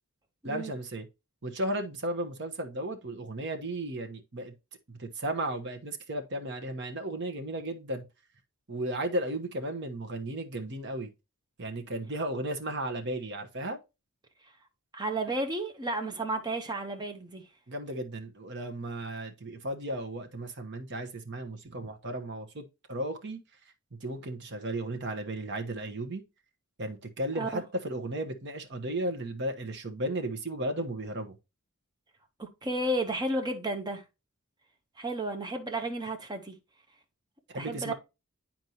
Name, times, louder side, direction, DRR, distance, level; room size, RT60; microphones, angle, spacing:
voice 1, 0.4-1.0 1.4-4.5 4.9-8.0 8.7-11.1 11.6-13.8 17.7-23.4 24.0-26.2 26.8-31.4 37.5-37.9, right 1 dB, 55° right, 1.0 m, -35 dB
voice 2, 14.9-17.4 27.3-27.6 32.4-34.0 35.0-36.6 37.5-37.9, right 1 dB, 20° right, 0.9 m, -32 dB
9.3 x 4.4 x 2.9 m
head